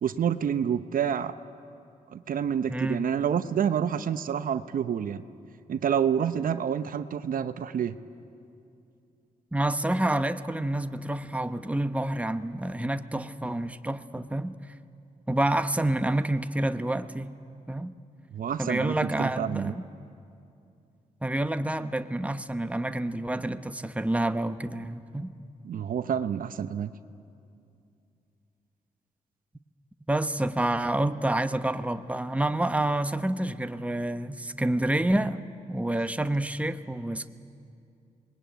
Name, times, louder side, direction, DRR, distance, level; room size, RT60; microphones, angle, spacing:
voice 1, 0.0-1.3 2.1-5.2 5.7-7.9 18.3-19.7 25.6-26.9, right 8 dB, 65° right, 0.8 m, -28 dB
voice 2, 2.7-3.0 9.5-14.6 15.3-17.3 17.7-17.9 18.6-19.9 21.2-25.3 30.1-37.3, right 1 dB, 10° right, 1.0 m, -28 dB
26.0 x 20.5 x 9.2 m
supercardioid pair, 55°, 15 cm